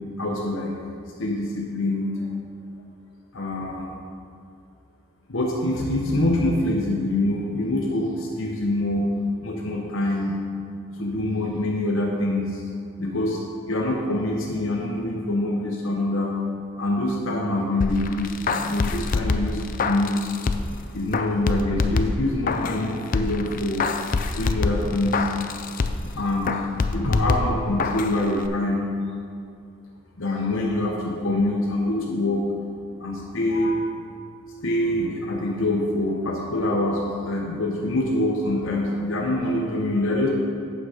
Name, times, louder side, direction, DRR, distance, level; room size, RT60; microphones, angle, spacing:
voice 1, 0.2-0.7 1.2-2.2 3.3-4.0 5.3-9.1 9.4-10.4 11.0-12.6 13.0-13.4 13.7-16.3 16.8-20.3 20.9-23.9 24.3-25.3 26.1-26.5 26.9-28.9 30.2-32.5 33.0-33.9 34.6-40.3, left 1 dB, 65° left, -2 dB, 0.9 m, -25 dB
sound 1, 17.8-20.8 21.1-22.8 23.1-26.1 26.5-28.1 28.4-28.5, left 4 dB, 40° left, 0.4 m, -26 dB
8.8 x 6.5 x 4.9 m, 2.4 s
head